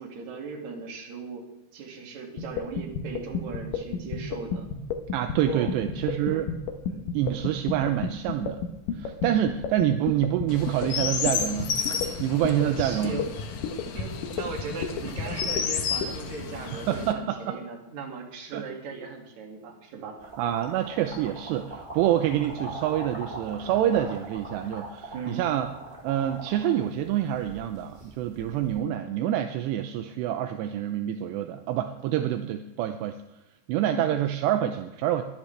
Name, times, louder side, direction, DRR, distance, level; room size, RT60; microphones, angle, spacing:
voice 1, 0.0-1.4 1.7-4.7 5.5-5.8 6.1-6.3 6.8-7.2 12.5-13.3 13.9-20.2 25.1-25.5 33.9-34.1, right 4 dB, 50° right, 0 dB, 3.0 m, -38 dB
sound 1, 2.4-16.1, left 7 dB, 75° left, 2.0 m, -31 dB
voice 2, 5.1-6.5 7.1-8.6 8.9-13.2 16.7-17.6 18.5-18.6 20.4-25.7 26.0-33.2 33.7-35.2, right 11 dB, 80° right, 7 dB, 2.7 m, -27 dB
Chirp tweet, 10.5-17.1, left 6 dB, 90° left, 1.6 m, -32 dB
sound 2, 20.2-28.7, right 2 dB, 10° right, 2.6 m, -41 dB
22.5 x 10.5 x 3.3 m, 0.96 s
omnidirectional pair, 5.2 m